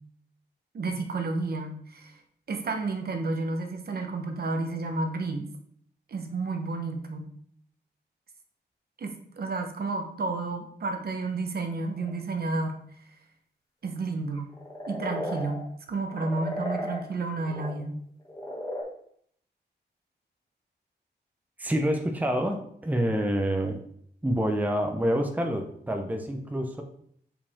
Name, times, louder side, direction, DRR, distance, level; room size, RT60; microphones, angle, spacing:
voice 1, 0.7-2.2 2.5-5.5 6.1-7.3 9.0-12.8 13.8-14.5 14.9-15.6 15.9-18.0, right 3 dB, 60° right, 4 dB, 1.0 m, -31 dB
sound 1, 11.8-12.2 14.3-15.7 16.1-17.7 18.3-18.8, equal, 20° left, 1.8 m, -34 dB
voice 2, 21.6-23.8 24.2-26.8, equal, 10° right, 3 dB, 0.7 m, -27 dB
6.7 x 5.2 x 3.6 m, 0.65 s
wide cardioid pair, 130°, 18 cm